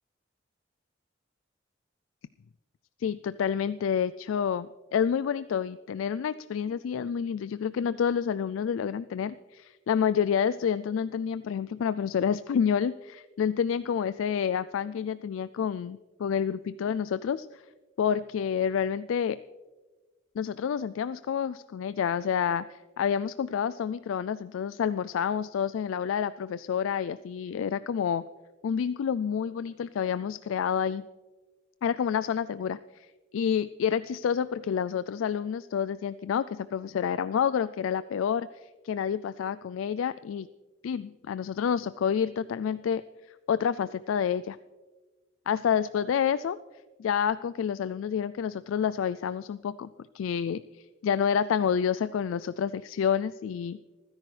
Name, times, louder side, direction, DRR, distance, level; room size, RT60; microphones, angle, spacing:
voice 1, 3.0-17.6 18.0-19.4 20.4-28.2 28.6-31.0 31.8-33.1 33.3-38.5 38.8-40.5 40.8-43.0 43.5-44.6 45.5-46.6 47.0-49.9 50.1-53.8, left 7 dB, 85° left, 15 dB, 0.3 m, -28 dB
26.0 x 10.5 x 3.3 m, 1.3 s
head